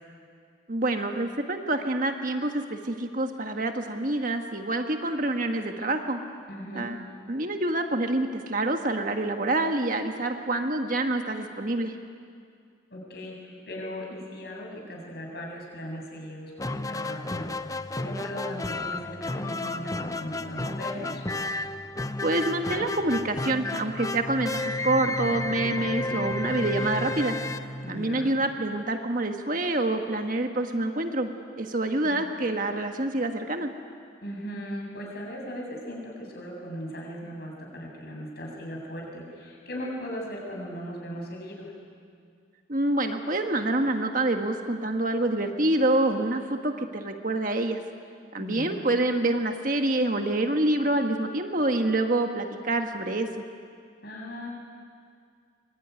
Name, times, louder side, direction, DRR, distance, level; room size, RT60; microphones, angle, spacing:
voice 1, 0.7-6.2 6.7-6.9 7.3-11.9 22.2-27.4 27.9-31.3 31.6-33.7 42.7-47.8 48.3-53.4, right 2 dB, 45° right, 5 dB, 1.5 m, -27 dB
voice 2, 6.5-6.9 12.9-21.2 27.8-28.3 32.0-32.2 34.2-41.7 48.3-48.9 54.0-54.5, equal, 55° left, -1 dB, 7.5 m, -38 dB
sound 1, 16.6-28.4, left 2 dB, 15° left, 0.6 m, -32 dB
24.5 x 23.0 x 9.6 m, 2.2 s
head